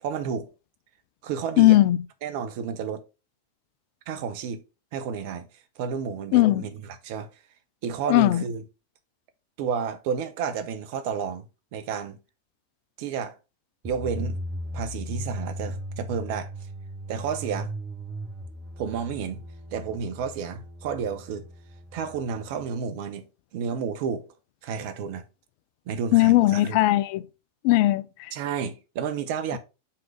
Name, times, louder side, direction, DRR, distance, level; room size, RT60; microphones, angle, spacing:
voice 1, 0.0-0.5 1.2-1.8 2.2-3.0 4.1-4.6 4.9-5.5 5.8-7.3 7.8-8.6 9.6-11.5 11.7-12.2 13.0-13.3 13.8-14.4 14.7-16.5 17.1-17.7 18.8-19.4 19.7-21.4 21.9-23.2 23.5-24.3 24.6-25.2 25.9-26.8 28.3-29.6, right 6 dB, 50° right, 0.8 m, -31 dB
voice 2, 1.6-2.0 6.3-6.6 8.1-8.4 26.1-27.2 27.6-28.3, left 17 dB, 45° left, 0.4 m, -18 dB
sound 1, 13.8-22.7, equal, 20° right, 1.2 m, -37 dB
5.7 x 3.8 x 4.7 m
figure-of-eight pair, 90°, 0 cm